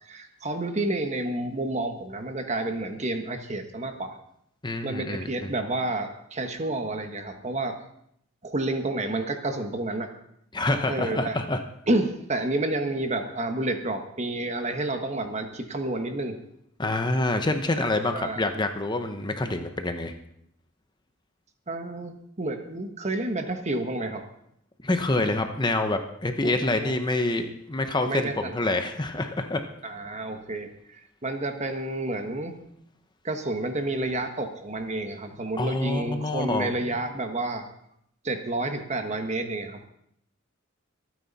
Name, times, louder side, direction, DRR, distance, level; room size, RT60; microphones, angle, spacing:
voice 1, 0.0-4.2 4.8-7.8 8.4-10.1 10.9-11.4 11.9-16.4 18.1-18.4 21.7-24.2 26.4-26.5 26.8-26.9 28.0-28.5 29.8-32.6 33.2-37.7 38.2-39.9, right 2 dB, 35° right, 6 dB, 1.3 m, -30 dB
voice 2, 4.6-5.5 10.5-11.6 16.8-20.1 24.8-29.6 35.6-36.7, left 2 dB, 20° left, 6 dB, 0.9 m, -27 dB
25.0 x 9.5 x 4.2 m, 0.73 s
head